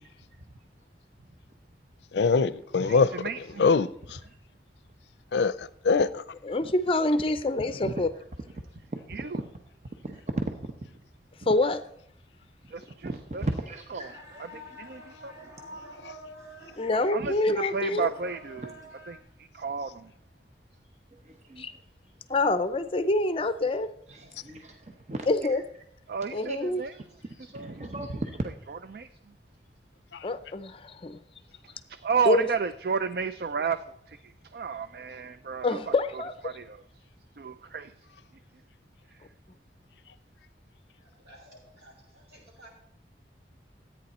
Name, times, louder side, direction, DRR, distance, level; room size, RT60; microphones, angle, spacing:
voice 1, 2.1-3.1 3.6-4.2 5.3-6.2 30.1-30.3, left 4 dB, 80° left, 0.5 m, -23 dB
voice 2, 2.9-3.7 9.1-9.4 12.7-13.4 13.9-14.1 14.5-15.3 16.9-17.3 17.7-18.7 19.1-20.1 26.1-26.9 27.5-27.9 28.9-29.1 32.0-35.9 36.4-36.8 37.4-37.9, right 5 dB, 55° right, 0.4 m, -32 dB
voice 3, 6.4-8.1 11.5-11.8 16.8-18.1 21.6-21.7 22.3-23.9 25.3-25.6 26.3-26.8 30.2-31.2 32.2-32.5 35.6-36.5, left 2 dB, 30° left, 0.5 m, -26 dB
voice 4, 7.7-8.0 10.0-10.4 12.9-14.4 14.7-14.8 15.6-15.7 16.3-16.9 17.2-17.3 18.6-18.7 21.1-21.8 24.1-25.6 26.5-26.6 27.5-28.5, right 2 dB, 40° right, 0.8 m, -36 dB
sound 1, 14.0-19.2, equal, 20° right, 1.5 m, -47 dB
voice 5, 26.8-27.5 41.0-42.7, right 1 dB, 75° right, 5.9 m, -55 dB
13.0 x 9.0 x 4.2 m
head